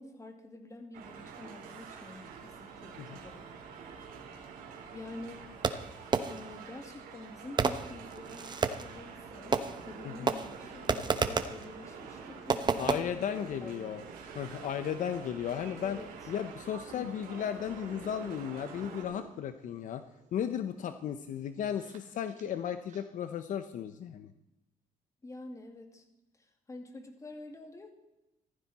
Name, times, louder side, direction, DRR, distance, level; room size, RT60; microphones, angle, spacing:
voice 1, 0.0-3.5 4.9-5.5 6.2-13.2 13.6-14.0 15.8-16.1 16.9-17.1 25.2-26.0 26.3-28.0, left 2 dB, 20° left, 5 dB, 2.4 m, -47 dB
sound 1, 0.9-19.0, right 6 dB, 85° right, 3.2 m, -48 dB
Fireworks, 5.6-6.6 7.6-9.0 9.5-10.0 10.3-11.6 12.5-13.0, right 5 dB, 30° right, 1.0 m, -30 dB
sound 2, 9.2-23.0, right 5 dB, 55° right, 2.5 m, -52 dB
voice 2, 12.8-14.0 14.3-16.0 16.3-20.0 20.3-24.3, left 9 dB, 60° left, 10 dB, 0.9 m, -35 dB
15.5 x 14.0 x 4.3 m, 0.95 s
cardioid pair, 115°, 15 cm